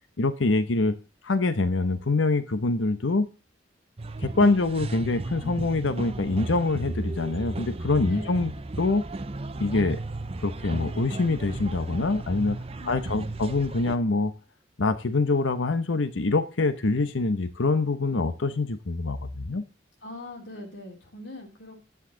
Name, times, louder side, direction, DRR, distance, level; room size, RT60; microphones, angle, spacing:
voice 1, 0.2-0.9 1.2-3.3 4.2-8.5 8.8-9.0 9.6-10.0 10.4-12.6 12.9-14.3 14.8-19.6, left 3 dB, 85° left, 11 dB, 0.8 m, -25 dB
sound 1, 4.0-14.0, right 2 dB, 30° right, 0.6 m, -35 dB
voice 2, 8.1-8.4 12.8-13.4 20.0-21.8, left 1 dB, 70° left, 1 dB, 3.3 m, -42 dB
10.0 x 8.4 x 3.8 m, 0.30 s
head